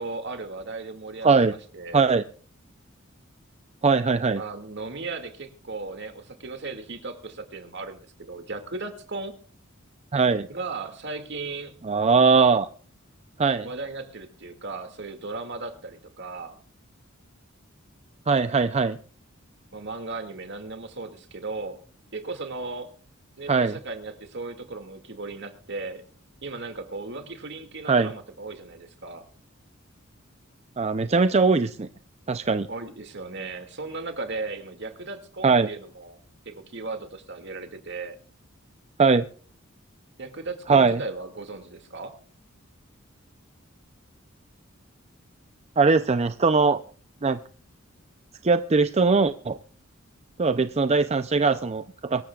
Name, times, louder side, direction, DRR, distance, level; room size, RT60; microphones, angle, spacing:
voice 1, 0.0-2.0 4.3-9.3 10.5-11.7 13.6-16.6 19.7-21.8 22.1-22.9 23.4-26.0 26.4-29.2 32.7-36.2 36.5-38.2 40.2-42.1, right 3 dB, 60° right, 7 dB, 2.2 m, -36 dB
voice 2, 1.9-2.2 3.8-4.4 10.1-10.5 11.8-12.7 13.4-13.7 18.3-19.0 23.5-23.8 27.9-28.1 30.8-31.9 32.3-32.7 35.4-35.7 39.0-39.2 40.7-41.0 45.8-46.8 47.2-47.4 48.4-49.6 50.4-52.2, right 4 dB, 30° right, 10 dB, 0.5 m, -20 dB
23.5 x 13.5 x 2.4 m, 0.44 s
head